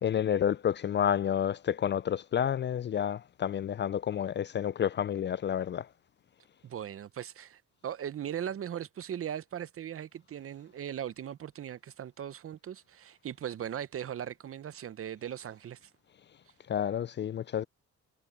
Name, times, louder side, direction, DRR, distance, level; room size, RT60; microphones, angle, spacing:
voice 1, 0.0-5.9 16.7-17.6, left 9 dB, 40° left, 0.4 m, -30 dB
voice 2, 6.6-15.9, right 9 dB, 45° right, 0.8 m, -39 dB
cardioid pair, 90°, 30 cm